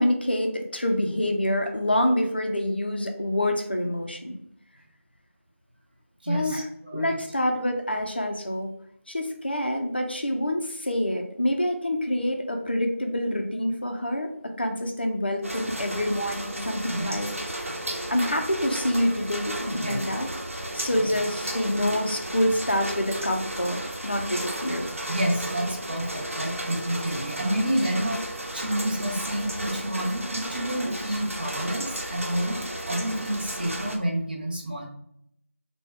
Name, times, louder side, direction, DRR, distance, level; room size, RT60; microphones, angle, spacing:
voice 1, 0.0-4.4 6.3-6.6 6.9-8.7 9.1-14.3 14.6-17.3 17.6-17.7 18.1-20.3 20.7-24.9, left 1 dB, 45° left, 3 dB, 0.4 m, -26 dB
voice 2, 6.2-7.2 16.9-17.1 19.7-20.0 21.0-21.1 25.1-32.6 32.9-34.9, right 1 dB, 40° right, -1 dB, 0.7 m, -29 dB
sound 1, 15.4-34.0, right 1 dB, 70° right, 0.9 m, -34 dB
3.3 x 2.1 x 3.3 m, 0.73 s
figure-of-eight pair, 175°, 8 cm